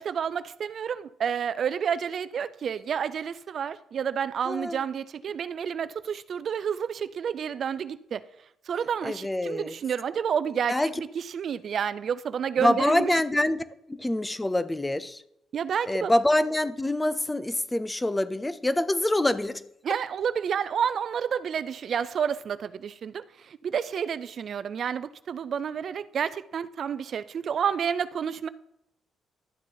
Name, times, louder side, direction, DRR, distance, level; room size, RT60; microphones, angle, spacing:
voice 1, 0.0-8.2 8.7-13.2 15.5-16.1 19.8-28.5, right 7 dB, 55° right, 0.4 m, -30 dB
voice 2, 4.5-4.8 9.0-9.7 10.7-10.9 12.6-13.6 13.9-15.2 15.9-19.6, left 1 dB, 15° left, 0.6 m, -25 dB
11.5 x 7.3 x 4.0 m
cardioid pair, 90°, 0 cm